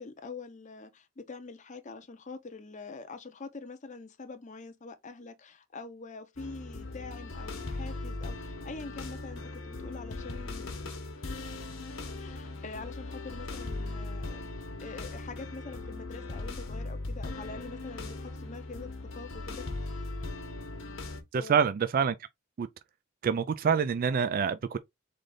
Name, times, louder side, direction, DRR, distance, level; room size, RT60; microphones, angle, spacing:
voice 1, 0.0-10.7 12.2-18.9 19.1-20.3 21.4-21.6, left 3 dB, 35° left, 0.6 m, -45 dB
sound 1, 6.4-21.2, left 2 dB, 75° left, 1.1 m, -39 dB
voice 2, 21.3-22.1 22.6-22.7 23.2-24.8, right 6 dB, 45° right, 0.3 m, -26 dB
3.9 x 3.3 x 3.8 m
head